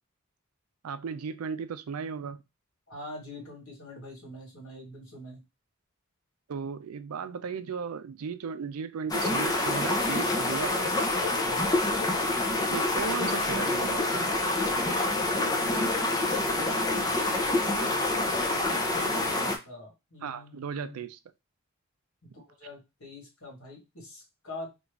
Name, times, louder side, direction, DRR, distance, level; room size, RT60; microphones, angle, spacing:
voice 1, 0.8-2.4 6.5-11.0 12.7-14.3 14.7-14.9 20.2-21.2, right 6 dB, 90° right, 0.4 m, -36 dB
voice 2, 2.9-5.4 11.4-11.8 15.2-21.0 22.2-24.9, left 2 dB, 80° left, 1.7 m, -45 dB
sound 1, 9.1-19.6, left 2 dB, 20° left, 0.5 m, -27 dB
3.1 x 2.4 x 3.4 m
head